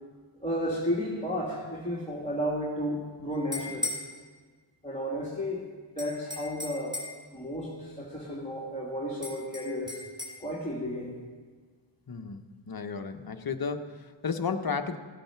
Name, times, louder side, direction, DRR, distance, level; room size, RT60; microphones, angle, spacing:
voice 1, 0.4-4.0 4.8-7.0 7.3-10.0 10.4-11.1, equal, 15° left, -6 dB, 2.2 m, -33 dB
sound 1, 3.3-4.1 6.0-7.2 9.2-10.4, left 2 dB, 10° right, 3.7 m, -36 dB
voice 2, 12.1-15.0, left 5 dB, 45° left, 8 dB, 0.9 m, -33 dB
16.0 x 8.7 x 5.8 m, 1.5 s
wide cardioid pair, 70°, 48 cm